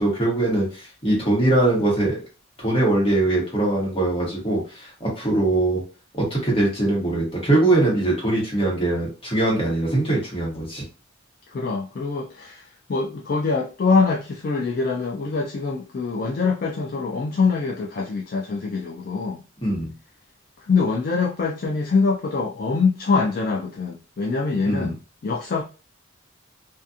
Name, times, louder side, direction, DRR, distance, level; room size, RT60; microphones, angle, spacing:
voice 1, 0.0-2.2 2.6-5.8 6.1-10.8 19.6-19.9 24.6-24.9, right 2 dB, 25° left, 1.2 m, -22 dB
voice 2, 11.5-19.4 20.6-25.6, left 4 dB, 45° left, 0.3 m, -24 dB
2.6 x 2.5 x 2.4 m
head